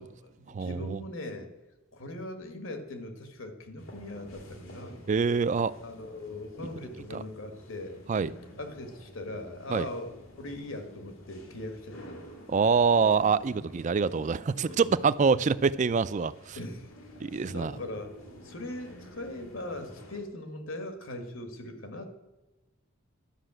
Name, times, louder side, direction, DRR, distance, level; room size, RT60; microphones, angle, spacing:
voice 1, 0.0-1.5 1.9-5.0 5.8-8.2 8.6-10.1 10.4-12.2 13.5-13.7 14.5-15.0 16.5-17.2 17.5-18.1 18.4-22.1, left 1 dB, 75° left, 1.6 m, -40 dB
voice 2, 0.5-1.0 5.1-5.7 7.1-7.2 8.1-8.3 9.7-9.9 12.5-16.6 17.2-17.7, right 5 dB, 35° right, 0.4 m, -25 dB
sound 1, 3.8-20.2, equal, 90° left, 2.2 m, -49 dB
11.5 x 5.8 x 7.6 m
head